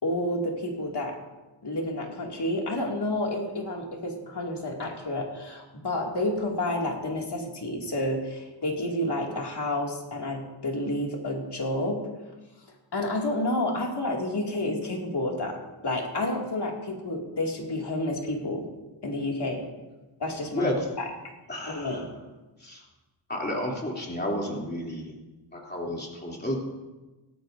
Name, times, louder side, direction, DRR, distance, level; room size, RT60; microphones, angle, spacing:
voice 1, 0.0-1.2 1.6-12.0 12.9-15.6 15.8-18.6 19.0-19.6 20.2-20.7 21.0-21.1 21.6-22.1, left 1 dB, 50° left, 0 dB, 2.4 m, -30 dB
voice 2, 20.5-20.8 21.5-22.0 22.6-22.8 23.3-25.1 25.5-26.6, left 1 dB, 20° left, -3 dB, 3.0 m, -31 dB
17.0 x 13.5 x 2.6 m, 1.1 s
wide cardioid pair, 90°, 50 cm